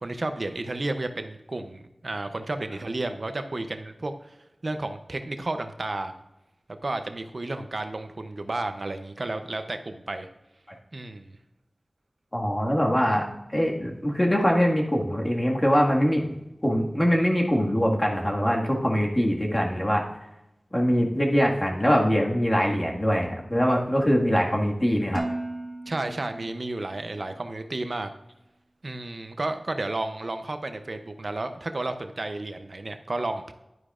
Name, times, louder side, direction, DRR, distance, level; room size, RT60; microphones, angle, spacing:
voice 1, 0.0-4.4 4.6-6.1 6.8-10.3 10.9-11.3 25.9-28.1 28.8-33.5, right 2 dB, 60° right, 7 dB, 0.6 m, -32 dB
voice 2, 12.3-16.4 16.6-20.0 20.7-25.2, equal, 25° left, -1 dB, 1.8 m, -23 dB
Dishes pots and pans, 25.1-27.2, right 2 dB, 40° right, 1.1 m, -36 dB
11.0 x 9.7 x 2.5 m, 0.93 s
wide cardioid pair, 65°, 0 cm